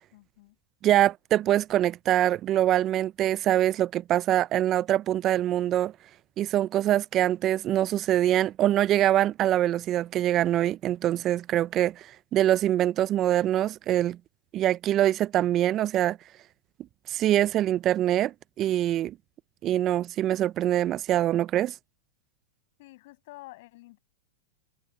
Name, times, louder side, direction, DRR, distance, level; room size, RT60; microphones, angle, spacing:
voice 1, 0.1-0.6 22.8-24.0, left 20 dB, 60° left, 6.6 m, -49 dB
voice 2, 0.8-5.9 6.4-12.1 12.3-14.2 14.5-16.2 17.1-19.1 19.6-21.7, right 12 dB, 35° right, 0.4 m, -24 dB
hypercardioid pair, 125°, 0 cm